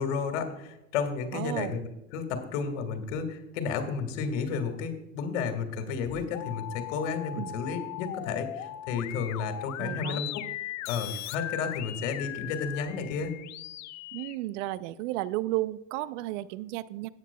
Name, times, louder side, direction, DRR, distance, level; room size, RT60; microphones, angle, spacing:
voice 1, 0.0-13.4, left 5 dB, 70° left, 6 dB, 1.9 m, -32 dB
voice 2, 1.3-1.8 7.4-7.5 9.8-10.2 14.1-17.1, right 16 dB, 65° right, 17 dB, 0.6 m, -33 dB
sound 1, 5.9-14.4, left 13 dB, 45° left, 0.7 m, -39 dB
17.0 x 9.0 x 2.3 m, 0.92 s
hypercardioid pair, 75°, 38 cm